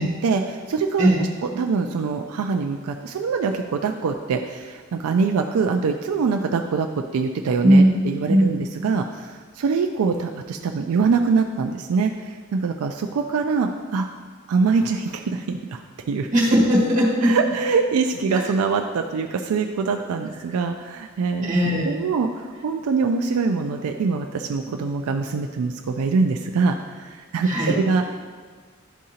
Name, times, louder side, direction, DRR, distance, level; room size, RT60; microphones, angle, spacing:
voice 1, 0.2-6.9 7.1-14.1 14.5-15.8 16.1-16.3 17.2-21.5 21.8-28.2, right 4 dB, 80° right, 4 dB, 0.3 m, -24 dB
voice 2, 7.6-8.0 8.3-8.5 16.3-17.4 18.3-18.4 21.4-21.9 27.4-27.8, equal, 35° right, -5 dB, 1.5 m, -17 dB
11.0 x 3.7 x 2.8 m, 1.6 s
head